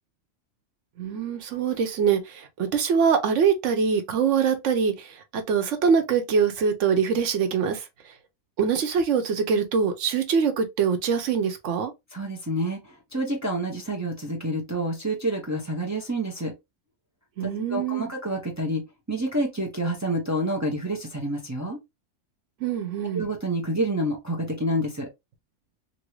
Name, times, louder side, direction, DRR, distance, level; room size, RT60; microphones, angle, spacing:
voice 1, 1.0-7.8 8.6-11.9 17.4-18.1 22.6-23.3, right 6 dB, 80° right, 1.1 m, -24 dB
voice 2, 12.1-16.5 17.4-18.8 19.1-21.8 23.1-25.1, right 1 dB, 20° right, 0.6 m, -28 dB
3.0 x 2.6 x 3.0 m
omnidirectional pair, 1.3 m